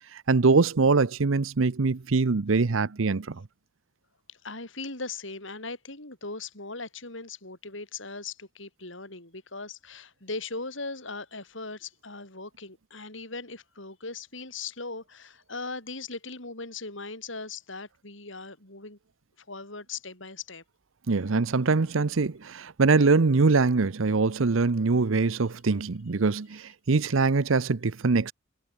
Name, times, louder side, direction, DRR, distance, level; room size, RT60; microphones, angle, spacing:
voice 1, 0.1-3.4 21.1-28.3, right 4 dB, 85° right, 0.8 m, -23 dB
voice 2, 4.3-19.0 19.4-20.6, left 3 dB, 70° left, 7.7 m, -39 dB
head